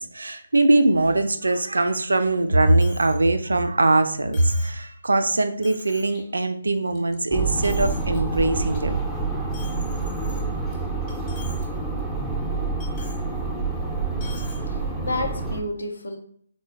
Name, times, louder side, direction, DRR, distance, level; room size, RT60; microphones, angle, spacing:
voice 1, 0.0-9.0, right 2 dB, 70° right, 8 dB, 0.4 m, -21 dB
Coin (dropping), 2.8-3.2 3.6-3.7 4.3-4.8 5.3-5.4 5.6-6.2 6.7-7.2 7.5-8.2 8.6-8.8 9.5-10.7 11.1-11.7 12.0-12.1 12.8-13.2 14.2-14.6, left 3 dB, 25° left, 1.0 m, -45 dB
sound 1, 7.3-15.6, right 3 dB, ahead, 0.4 m, -27 dB
voice 2, 14.7-16.2, left 2 dB, 70° left, 3 dB, 0.7 m, -30 dB
3.7 x 2.1 x 3.6 m, 0.63 s
figure-of-eight pair, 140°, 0 cm